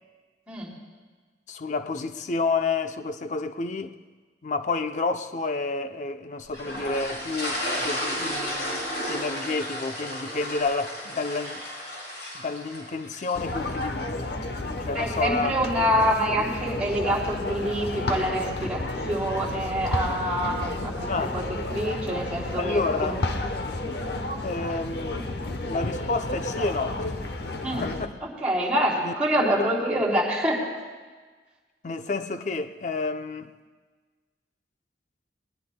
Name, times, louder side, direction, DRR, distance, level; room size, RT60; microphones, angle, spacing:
voice 1, 1.5-4.0 4.4-11.6 12.3-14.3 14.9-15.5 21.1-21.4 22.6-23.2 24.4-25.2 25.6-27.1 27.8-28.2 29.0-29.1 29.6-29.7 31.8-33.5, left 3 dB, 45° left, 0.6 m, -30 dB
sound 1, 6.5-13.8, equal, 90° left, 5.8 m, -33 dB
sound 2, 13.3-28.1, left 2 dB, 65° left, 0.9 m, -31 dB
voice 2, 14.9-21.1 21.3-21.4 21.7-23.2 27.6-27.8 28.2-30.6, equal, 10° right, 3.5 m, -26 dB
21.5 x 20.0 x 2.2 m
head